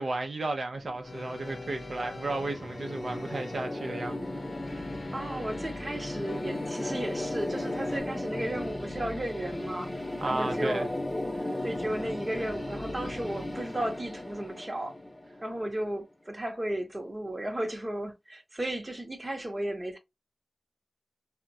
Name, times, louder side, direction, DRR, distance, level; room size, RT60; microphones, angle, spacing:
voice 1, 0.0-4.4 4.7-4.9 10.2-10.9 11.3-11.5, right 2 dB, 65° right, 0.5 m, -34 dB
sound 1, 0.7-15.8, left 1 dB, 20° left, 0.7 m, -36 dB
sound 2, 1.0-8.0, left 2 dB, 60° left, 0.7 m, -43 dB
voice 2, 5.1-9.9 10.2-10.9 11.6-14.9 15.4-20.0, right 1 dB, 25° right, 0.8 m, -34 dB
3.4 x 2.1 x 2.6 m
wide cardioid pair, 80°, 0 cm